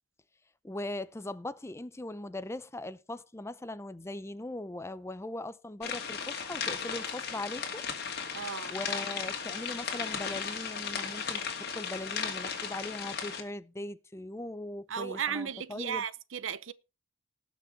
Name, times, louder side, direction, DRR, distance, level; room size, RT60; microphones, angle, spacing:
voice 1, 0.6-7.8 8.7-16.0, left 1 dB, 15° left, 0.5 m, -40 dB
sound 1, 5.8-13.4, left 6 dB, 50° left, 2.2 m, -36 dB
voice 2, 8.3-8.8 14.9-16.7, right 7 dB, 70° right, 0.6 m, -35 dB
18.5 x 6.2 x 4.5 m
head